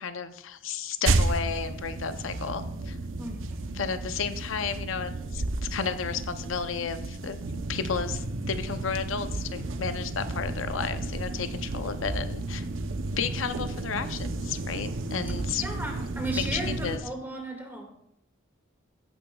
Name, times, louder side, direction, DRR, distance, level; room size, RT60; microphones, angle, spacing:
voice 1, 0.0-3.0 3.7-7.4 7.7-12.6 13.2-15.6 16.3-17.0, left 6 dB, 80° left, 10 dB, 0.6 m, -32 dB
sound 1, 1.0-17.0, right 2 dB, 75° right, 0.7 m, -32 dB
voice 2, 3.2-3.7 15.6-17.9, right 1 dB, 10° right, 1 dB, 1.9 m, -35 dB
15.5 x 8.7 x 2.3 m, 0.76 s
head